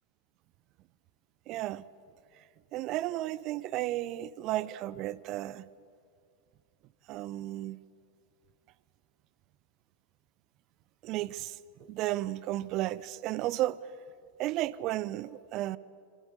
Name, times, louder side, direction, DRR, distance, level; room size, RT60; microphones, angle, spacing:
voice 1, 1.5-1.8 2.7-5.7 7.1-7.8 11.0-11.6 11.9-13.8 14.4-15.8, right 15 dB, 40° right, 0.8 m, -33 dB
26.5 x 26.0 x 8.4 m
figure-of-eight pair, 90°, 0 cm